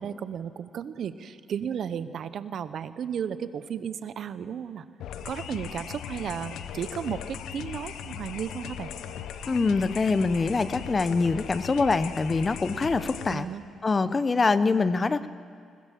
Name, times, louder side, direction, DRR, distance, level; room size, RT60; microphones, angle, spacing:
voice 1, 0.0-4.8 5.2-8.9 13.3-13.6, right 8 dB, 60° right, 14 dB, 0.9 m, -34 dB
sound 1, 5.0-13.3, left 9 dB, 80° left, 1.0 m, -38 dB
voice 2, 9.5-13.5 13.8-15.3, left 4 dB, 30° left, 14 dB, 0.8 m, -24 dB
20.5 x 20.0 x 7.5 m, 2.2 s
cardioid pair, 90°, 0 cm